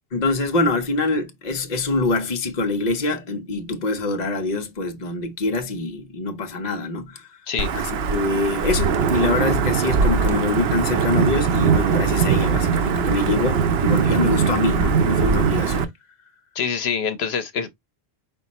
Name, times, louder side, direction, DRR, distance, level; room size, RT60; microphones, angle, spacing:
voice 1, 0.1-7.3 7.7-15.9, left 2 dB, 45° left, 0.9 m, -24 dB
Wind / Thunder / Rain, 7.6-15.8, right 6 dB, 70° right, 0.9 m, -21 dB
voice 2, 16.5-17.7, left 6 dB, 75° left, 1.0 m, -25 dB
5.6 x 2.1 x 4.0 m
omnidirectional pair, 1.1 m